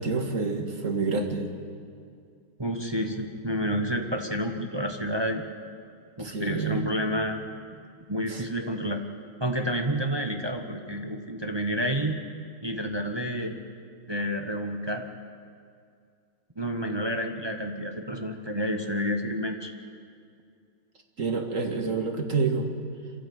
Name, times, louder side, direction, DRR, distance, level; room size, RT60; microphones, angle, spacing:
voice 1, 0.0-1.5 6.2-6.9 8.3-8.4 21.2-22.7, right 4 dB, 40° right, 4 dB, 2.1 m, -28 dB
voice 2, 2.6-5.4 6.2-7.4 8.1-9.0 9.4-12.2 12.6-13.6 14.1-15.1 16.6-19.7, equal, 20° right, 4 dB, 0.7 m, -29 dB
26.0 x 13.5 x 9.4 m, 2.3 s
omnidirectional pair, 2.3 m